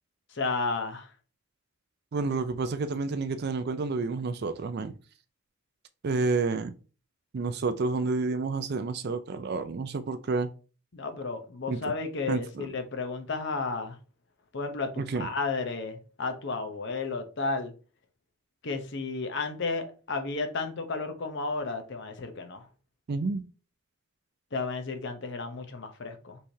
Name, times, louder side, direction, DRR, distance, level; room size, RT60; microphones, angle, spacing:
voice 1, 0.3-1.1 10.9-14.0 14.5-17.7 18.6-22.7 24.5-26.4, left 3 dB, 50° left, 0.7 m, -33 dB
voice 2, 2.1-4.9 6.0-6.7 7.3-10.5 11.7-11.9 12.3-12.7 15.0-15.3 23.1-23.4, right 3 dB, 45° right, 0.4 m, -29 dB
5.5 x 3.2 x 2.7 m
head